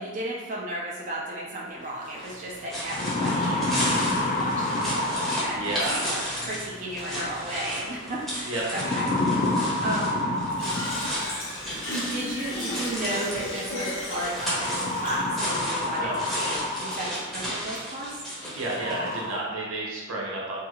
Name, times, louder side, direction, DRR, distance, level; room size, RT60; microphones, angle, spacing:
voice 1, 0.0-10.2 11.9-18.2, right 1 dB, 40° right, -4 dB, 0.4 m, -34 dB
sound 1, 2.0-19.2, equal, ahead, 0.6 m, -34 dB
sound 2, 2.1-2.2 2.7-6.1 7.5-7.9 8.7-11.5 12.8-12.9 14.4-17.3 17.8-17.9 18.4-18.5 18.8-19.3, left 2 dB, 40° left, 0.4 m, -28 dB
voice 2, 5.5-6.1 8.4-8.6 16.0-16.2 18.5-20.6, right 2 dB, 85° right, -4 dB, 0.7 m, -31 dB
Fill (with liquid), 10.6-15.6, left 1 dB, 80° left, 0.7 m, -35 dB
2.6 x 2.3 x 2.8 m, 1.2 s
head